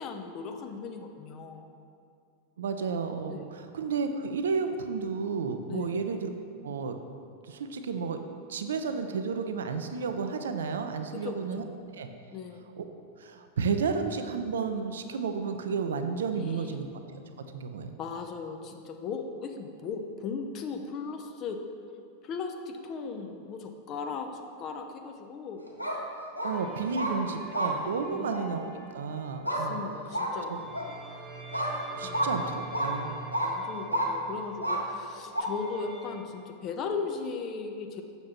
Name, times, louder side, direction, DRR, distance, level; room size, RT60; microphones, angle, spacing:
voice 1, 0.0-1.7 3.3-3.4 5.7-6.0 11.1-11.7 12.3-12.7 16.3-16.8 18.0-21.6 22.2-25.7 26.9-27.0 28.1-28.3 29.4-30.6 32.0-32.3 33.4-38.0, left 5 dB, 35° left, 5 dB, 0.6 m, -37 dB
voice 2, 2.6-6.3 6.6-7.0 7.4-8.2 8.5-11.6 11.9-12.1 12.8-12.9 13.2-16.9 17.4-17.9 26.4-29.8 30.5-30.6 31.9-33.2, right 5 dB, 65° right, 7 dB, 0.4 m, -32 dB
sound 1, 25.7-26.0 26.4-26.5 26.9-27.1 27.5-27.7 28.3-28.4 29.4-29.6 30.1-30.3 30.7-30.9 31.5-31.7 32.1-32.3 32.7-32.9 33.3-33.5 33.9-34.1 34.6-34.8 35.3-35.4, right 1 dB, 90° right, 0.8 m, -29 dB
sound 2, 26.5-29.8 30.4-36.2, right 3 dB, 5° right, 1.4 m, -46 dB
7.0 x 6.6 x 3.0 m, 2.4 s
figure-of-eight pair, 90°, 0 cm